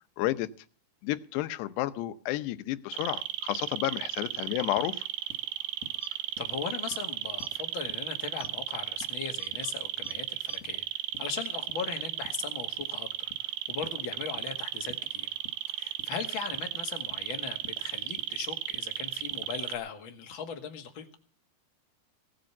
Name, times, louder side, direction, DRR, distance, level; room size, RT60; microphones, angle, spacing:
voice 1, 0.2-0.5 1.0-5.1, left 16 dB, 80° left, 12 dB, 2.9 m, -31 dB
sound 1, 2.9-19.8, right 13 dB, 75° right, 2.1 m, -35 dB
sound 2, 4.8-4.9 5.3-5.5 5.8-6.0 6.4-6.5 6.9-7.1 7.4-7.6 7.9-8.1 8.4-8.6 9.0-9.2 9.5-9.7 10.1-10.2 10.6-10.8 11.1-11.3 11.7-11.9 12.2-12.4 12.8-12.9 13.3-13.5 13.8-14.0 14.4-14.5 14.9-15.1 15.4-15.6 16.0-16.2 16.5-16.7 17.1-17.3 17.6-17.8 18.2-18.3 18.7-18.9 19.3-19.5, left 6 dB, 60° left, 3.1 m, -50 dB
sound 3, 6.0-6.5 6.8-7.0 7.4-7.7 8.3-9.7 10.0-10.1 10.5-10.6, left 4 dB, 15° right, 3.4 m, -49 dB
voice 2, 6.1-10.8 11.2-15.3 15.7-21.1, left 7 dB, 45° left, 4 dB, 1.8 m, -39 dB
18.0 x 7.8 x 7.1 m, 0.42 s
omnidirectional pair, 4.9 m